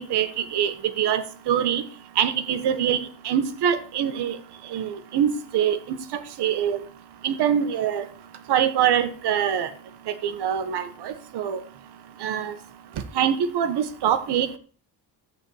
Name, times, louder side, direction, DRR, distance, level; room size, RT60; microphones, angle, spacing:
voice 1, 0.0-1.8 2.2-4.4 4.7-6.8 7.2-8.0 8.5-9.7 10.1-11.6 12.2-12.5 13.1-14.6, right 9 dB, 65° right, 10 dB, 1.4 m, -24 dB
14.0 x 4.9 x 8.0 m, 0.42 s
cardioid pair, 135°, 43 cm